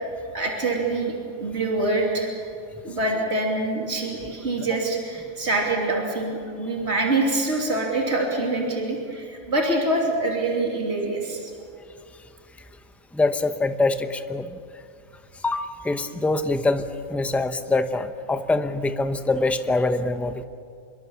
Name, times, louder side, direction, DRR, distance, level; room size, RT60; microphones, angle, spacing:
voice 1, 0.3-2.3 2.8-11.5, right 2 dB, 55° right, 0 dB, 3.3 m, -25 dB
voice 2, 13.1-14.6 15.4-20.4, left 2 dB, ahead, 9 dB, 0.8 m, -24 dB
26.5 x 22.5 x 7.2 m, 2.4 s
omnidirectional pair, 1.4 m